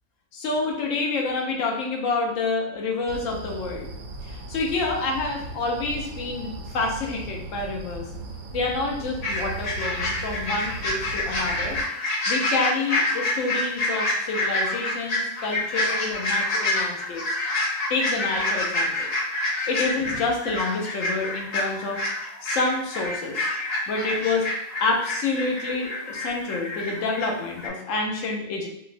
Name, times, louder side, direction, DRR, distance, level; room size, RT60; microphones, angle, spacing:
voice 1, 0.3-3.9 4.3-8.1 8.5-11.8 12.3-17.4 17.9-19.1 19.7-22.0 22.4-23.5 23.9-24.5 24.8-28.7, left 3 dB, 70° left, 1 dB, 1.0 m, -28 dB
sound 1, 3.1-11.8, right 2 dB, 75° right, 1.0 m, -37 dB
sound 2, 9.2-27.3 27.6-27.7, left 2 dB, 45° left, 0.5 m, -27 dB
4.0 x 2.1 x 2.5 m, 0.76 s
omnidirectional pair, 1.5 m